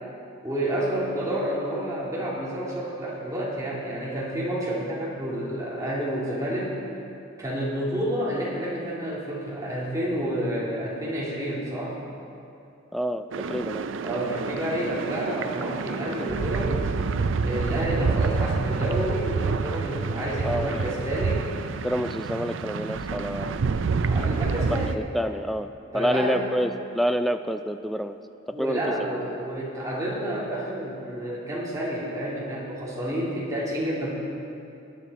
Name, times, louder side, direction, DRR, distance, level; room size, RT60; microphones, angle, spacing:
voice 1, 0.4-6.8 7.4-12.0 14.0-16.9 17.4-21.4 24.1-25.0 25.9-26.5 28.5-34.1, right 1 dB, 15° right, -6 dB, 2.7 m, -29 dB
voice 2, 12.9-13.9 20.4-20.9 21.8-23.6 24.7-25.7 25.9-28.2 28.5-28.8, equal, ahead, 8 dB, 0.3 m, -28 dB
sound 1, 13.3-25.0, right 4 dB, 65° right, 0.4 m, -28 dB
19.5 x 10.5 x 4.2 m, 2.6 s
head